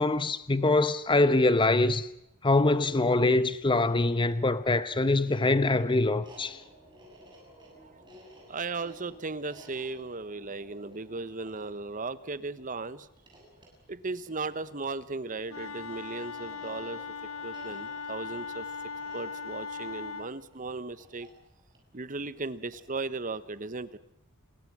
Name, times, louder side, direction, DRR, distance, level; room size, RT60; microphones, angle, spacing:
voice 1, 0.0-2.1 2.4-6.6, left 2 dB, 25° left, 0.9 m, -24 dB
sound 1, 3.7-22.9, right 1 dB, 20° right, 6.9 m, -56 dB
voice 2, 8.5-13.1 13.9-17.2 17.4-18.7 19.1-21.3 21.9-24.0, right 3 dB, 40° right, 1.0 m, -36 dB
Wind instrument woodwind instrument, 15.5-20.3, left 5 dB, 75° left, 1.3 m, -39 dB
29.0 x 21.5 x 6.1 m
head